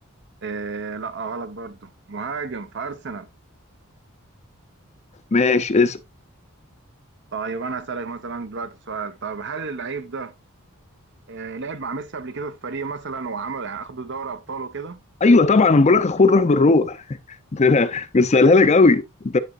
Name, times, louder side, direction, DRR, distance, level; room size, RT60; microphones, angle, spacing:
voice 1, 0.4-3.3 7.3-10.3 11.3-15.0, right 4 dB, 55° right, 0.8 m, -32 dB
voice 2, 5.3-6.0 15.2-17.0 17.5-19.4, left 3 dB, 30° left, 0.5 m, -16 dB
8.0 x 6.8 x 2.4 m
head